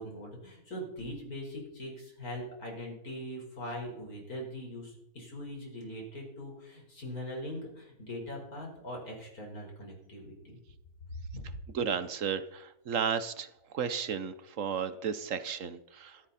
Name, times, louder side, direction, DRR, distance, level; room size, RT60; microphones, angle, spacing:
voice 1, 0.0-10.6 11.1-11.4, equal, 75° left, -1 dB, 5.3 m, -41 dB
voice 2, 11.7-13.5 13.7-16.2, right 7 dB, 60° right, 13 dB, 1.2 m, -33 dB
13.5 x 13.5 x 4.2 m, 0.82 s
omnidirectional pair, 1.6 m